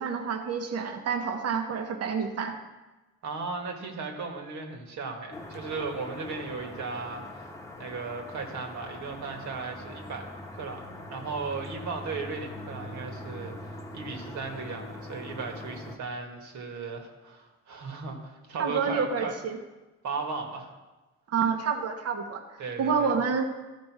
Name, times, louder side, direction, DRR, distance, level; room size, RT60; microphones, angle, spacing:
voice 1, 0.0-2.6 18.6-19.6 21.3-22.4 22.8-23.4, right 6 dB, 55° right, 6 dB, 1.0 m, -28 dB
voice 2, 3.2-7.5 7.8-10.3 10.5-19.3 20.0-20.7 22.6-23.1, right 4 dB, 75° right, 3 dB, 1.7 m, -36 dB
sound 1, 5.3-16.0, left 1 dB, 10° left, 1.0 m, -42 dB
14.0 x 5.1 x 4.8 m, 1.1 s
cardioid pair, 115°, 29 cm